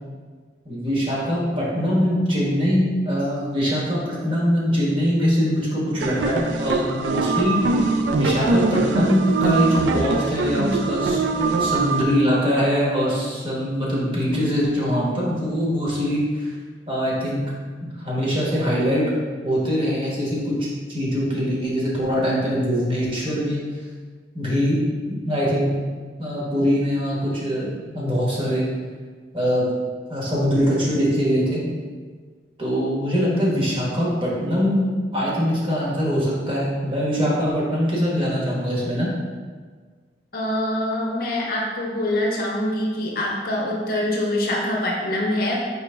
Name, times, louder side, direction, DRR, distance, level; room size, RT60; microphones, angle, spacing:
voice 1, 0.6-7.6 8.2-16.5 16.9-17.4 17.8-19.1 19.4-23.6 24.3-24.8 25.1-25.7 26.2-28.7 29.3-29.7 30.1-31.6 32.6-39.1, equal, 30° right, -6 dB, 1.2 m, -22 dB
sound 1, 6.0-12.0, right 3 dB, 90° right, 0.4 m, -22 dB
voice 2, 40.3-45.6, left 1 dB, 55° left, -2 dB, 0.7 m, -24 dB
4.9 x 3.1 x 3.3 m, 1.5 s
head